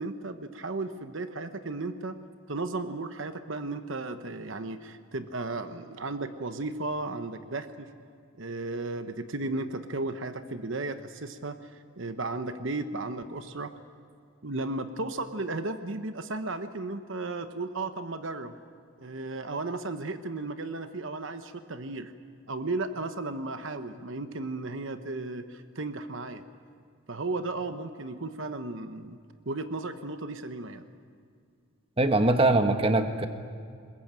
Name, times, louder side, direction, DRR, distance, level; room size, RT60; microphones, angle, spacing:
voice 1, 0.0-2.2 2.5-7.9 8.4-13.7 14.4-18.5 19.0-22.1 22.5-26.4 27.1-29.2 29.5-30.8, right 2 dB, 65° right, 9 dB, 1.1 m, -34 dB
voice 2, 32.0-33.3, right 2 dB, 25° right, 7 dB, 1.2 m, -22 dB
21.5 x 21.5 x 8.9 m, 2.3 s
head